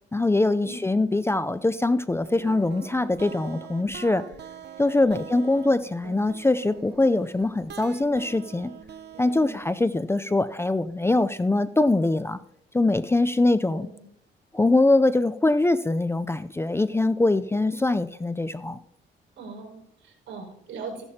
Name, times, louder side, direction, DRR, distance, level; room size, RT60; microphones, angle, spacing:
voice 1, 0.1-4.2 4.8-8.7 9.2-12.4 12.7-13.9 14.5-18.8, left 2 dB, 10° left, 13 dB, 0.5 m, -23 dB
sound 1, 2.2-9.8, right 8 dB, 60° right, 0.9 m, -44 dB
voice 2, 5.0-5.4 9.3-9.6 13.7-14.1 19.4-21.0, right 4 dB, 75° right, 0 dB, 5.4 m, -40 dB
15.0 x 11.5 x 2.8 m, 0.71 s
cardioid pair, 90°, 20 cm